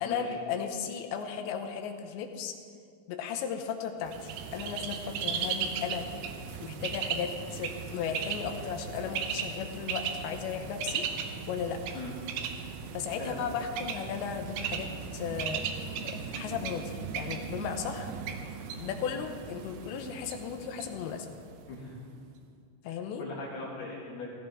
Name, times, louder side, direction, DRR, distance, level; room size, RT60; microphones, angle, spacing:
voice 1, 0.0-2.5 3.1-6.1 6.6-11.1 11.5-11.8 12.9-15.6 16.0-18.1 18.8-21.3 22.8-23.2, left 7 dB, 80° left, 5 dB, 3.0 m, -35 dB
Bird, 4.1-21.8, right 6 dB, 75° right, 2.9 m, -37 dB
voice 2, 13.2-13.5 21.7-22.1 22.8-24.3, left 2 dB, 60° left, -4 dB, 3.7 m, -40 dB
16.0 x 15.5 x 3.7 m, 2.2 s
omnidirectional pair, 5.4 m